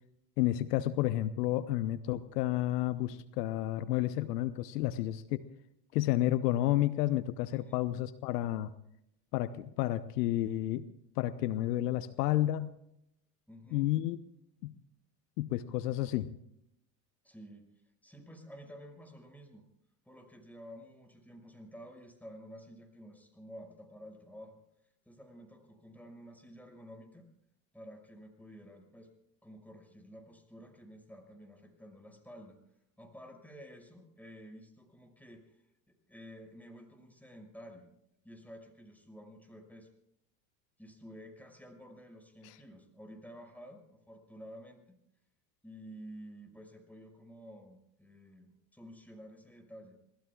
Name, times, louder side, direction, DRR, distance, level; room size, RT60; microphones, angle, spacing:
voice 1, 0.4-5.4 5.9-8.7 9.3-10.9 11.2-12.7 13.7-14.2 14.6-14.7 15.4-16.3 42.4-42.5, left 14 dB, 75° left, 14 dB, 0.9 m, -31 dB
voice 2, 7.4-7.8 13.5-13.9 17.2-17.6 18.0-19.6 20.0-24.6 25.0-27.2 27.7-29.1 29.4-32.6 33.0-37.9 38.2-39.9 40.8-44.8 45.6-50.0, equal, 5° left, 4 dB, 5.9 m, -51 dB
27.0 x 20.0 x 2.4 m, 0.80 s
hypercardioid pair, 80°, 48 cm